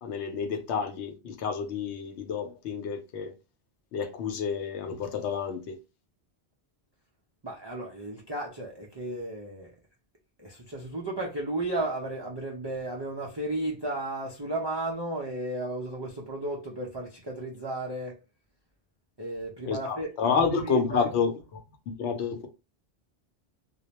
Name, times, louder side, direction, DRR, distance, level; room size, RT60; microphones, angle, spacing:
voice 1, 0.0-3.3 3.9-5.8 19.7-21.6 21.9-22.5, left 6 dB, 90° left, 0.9 m, -29 dB
voice 2, 7.4-9.7 10.4-18.1 19.2-21.1, right 2 dB, 40° right, 0.4 m, -34 dB
2.2 x 2.1 x 2.8 m
omnidirectional pair, 1.1 m